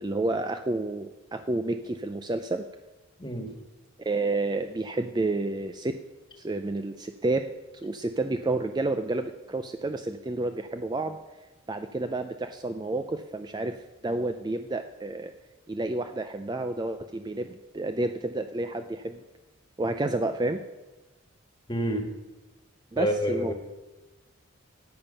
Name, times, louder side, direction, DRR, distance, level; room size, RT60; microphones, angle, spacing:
voice 1, 0.0-2.6 4.0-6.0 6.4-7.5 7.8-11.2 11.7-13.8 14.0-15.3 15.7-19.2 19.8-20.6 22.9-23.5, right 2 dB, 20° right, 8 dB, 0.3 m, -30 dB
voice 2, 3.2-3.5 7.8-7.9 21.7-22.1 22.9-23.5, equal, 20° left, 4 dB, 1.5 m, -28 dB
14.0 x 8.9 x 5.6 m, 1.1 s
head